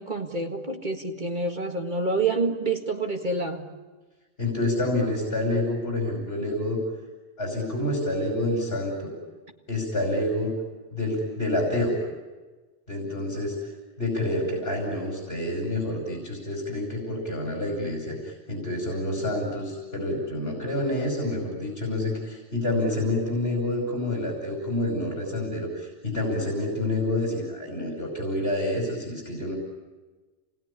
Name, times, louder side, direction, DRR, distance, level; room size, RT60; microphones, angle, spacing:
voice 1, 0.0-3.7, right 3 dB, 45° right, 3 dB, 2.1 m, -28 dB
voice 2, 4.4-6.8 7.4-9.1 9.7-10.5 10.9-12.0 12.9-29.6, left 1 dB, 65° left, 1 dB, 5.7 m, -28 dB
28.5 x 20.5 x 9.9 m, 1.3 s
omnidirectional pair, 1.1 m